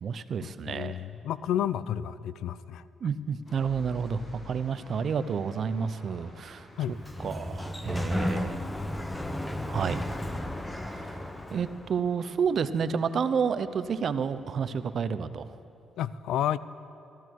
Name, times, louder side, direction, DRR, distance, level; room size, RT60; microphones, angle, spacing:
voice 1, 0.0-1.0 3.0-8.6 9.7-10.0 10.9-11.2 11.5-15.6, right 6 dB, 55° right, 13 dB, 0.5 m, -30 dB
voice 2, 0.7-2.8 6.8-6.9 16.0-16.6, left 11 dB, 80° left, 17 dB, 0.3 m, -30 dB
sound 1, 3.5-15.0, left 2 dB, 40° left, 2.4 m, -52 dB
Sliding door, 6.8-11.9, left 1 dB, 10° left, 0.8 m, -34 dB
14.5 x 14.0 x 4.6 m, 2.9 s
cardioid pair, 90°, 0 cm